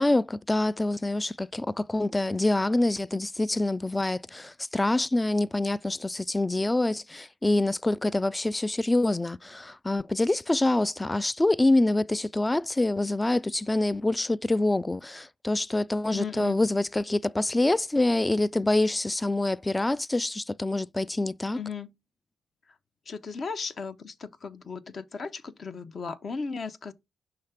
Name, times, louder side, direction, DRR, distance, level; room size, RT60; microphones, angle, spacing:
voice 1, 0.0-21.6, left 2 dB, 20° left, 0.3 m, -26 dB
voice 2, 16.1-16.6 21.6-21.9 23.1-26.9, left 5 dB, 50° left, 0.8 m, -36 dB
5.8 x 3.2 x 5.6 m
supercardioid pair, 55°, 0 cm